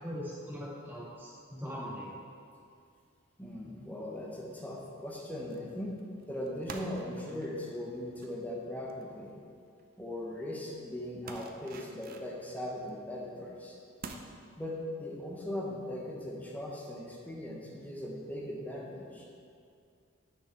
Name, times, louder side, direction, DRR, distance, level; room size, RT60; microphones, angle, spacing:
voice 1, 0.0-2.1, equal, 10° right, -8 dB, 1.8 m, -40 dB
voice 2, 3.4-5.9 6.3-9.3 10.0-13.8 14.6-19.3, left 1 dB, 10° left, -3 dB, 1.0 m, -39 dB
sound 1, 3.5-3.8 4.2-4.5 5.5-5.7 6.0-9.8 10.2-10.3 10.6-10.7 11.3-13.1 13.5-13.6 14.0-14.2, right 4 dB, 45° right, 0.5 m, -49 dB
6.4 x 6.2 x 4.4 m, 2.3 s
head